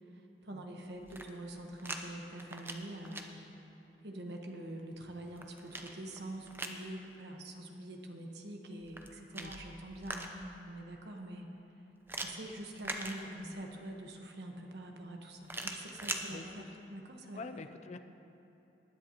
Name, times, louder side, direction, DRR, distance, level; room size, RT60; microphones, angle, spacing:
voice 1, 0.1-3.4 4.0-11.5 12.2-17.4, right 1 dB, 65° right, 2 dB, 1.2 m, -45 dB
sound 1, 0.9-2.0 2.3-3.2 5.0-6.8 8.8-10.6 12.1-13.7 15.4-16.2, right 2 dB, 10° right, 0.6 m, -42 dB
voice 2, 16.3-16.6 17.3-18.0, left 3 dB, 40° left, 8 dB, 0.4 m, -45 dB
19.5 x 10.0 x 2.9 m, 3.0 s
head